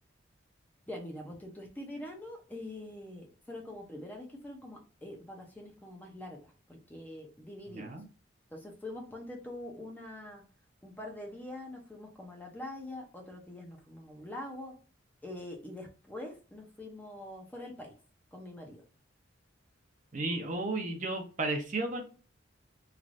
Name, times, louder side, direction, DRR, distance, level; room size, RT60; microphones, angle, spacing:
voice 1, 0.9-7.9 8.5-10.4 10.8-14.7 15.2-17.9 18.3-18.8, left 1 dB, 10° left, 0 dB, 0.6 m, -44 dB
voice 2, 7.7-8.0 20.1-22.0, right 2 dB, 40° right, 4 dB, 0.6 m, -33 dB
3.2 x 2.5 x 2.5 m, 0.36 s
head